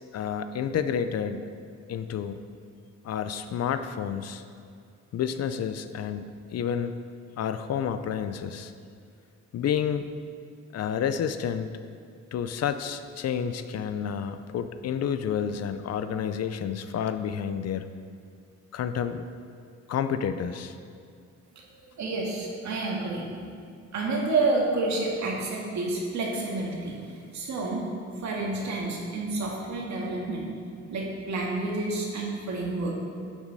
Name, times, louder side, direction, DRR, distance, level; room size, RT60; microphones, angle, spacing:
voice 1, 0.1-1.5 1.9-2.4 3.0-4.4 5.1-7.0 7.4-8.7 9.5-10.0 10.7-11.7 12.3-17.8 18.7-19.2 19.9-20.7, left 8 dB, 60° left, 10 dB, 0.6 m, -30 dB
voice 2, 22.0-23.3 23.9-26.9 27.3-27.8 28.2-30.5 30.9-32.9, right 2 dB, 70° right, -2 dB, 2.0 m, -29 dB
11.0 x 7.2 x 4.1 m, 2.3 s
cardioid pair, 135°, 29 cm